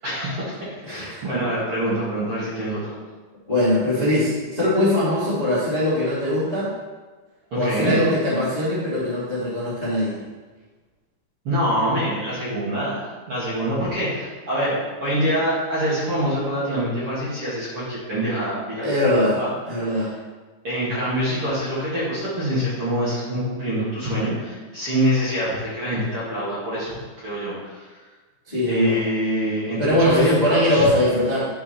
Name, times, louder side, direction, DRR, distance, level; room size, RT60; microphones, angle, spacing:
voice 1, 0.0-2.9 7.5-8.0 11.4-18.9 19.4-19.5 19.8-20.1 20.6-27.9 28.7-30.9, equal, 40° right, -9 dB, 2.1 m, -25 dB
voice 2, 0.8-1.2 3.5-6.7 7.5-10.2 18.8-19.4 19.6-20.1 28.5-29.0 29.8-31.4, left 1 dB, 20° left, -9 dB, 1.1 m, -21 dB
10.0 x 5.7 x 4.3 m, 1.3 s
omnidirectional pair, 5.4 m